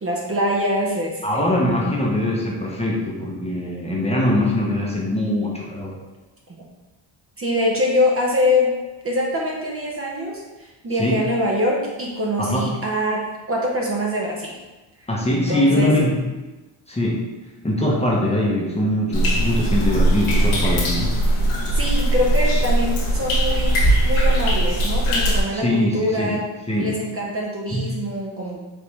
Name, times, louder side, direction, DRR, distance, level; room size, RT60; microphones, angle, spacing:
voice 1, 0.0-1.9 7.4-8.7 9.0-14.6 15.3-15.9 21.7-26.4 26.8-28.6, left 1 dB, 30° right, -2 dB, 0.8 m, -24 dB
voice 2, 1.2-6.0 11.0-11.2 12.4-12.7 15.1-16.2 16.9-17.3 17.6-21.1 25.5-26.4 26.7-27.0 27.7-27.9, left 1 dB, 15° left, -3 dB, 0.8 m, -22 dB
sound 1, 19.1-25.4, right 1 dB, 90° left, 1.1 m, -19 dB
5.0 x 2.5 x 3.3 m, 1.1 s
cardioid pair, 90°, 49 cm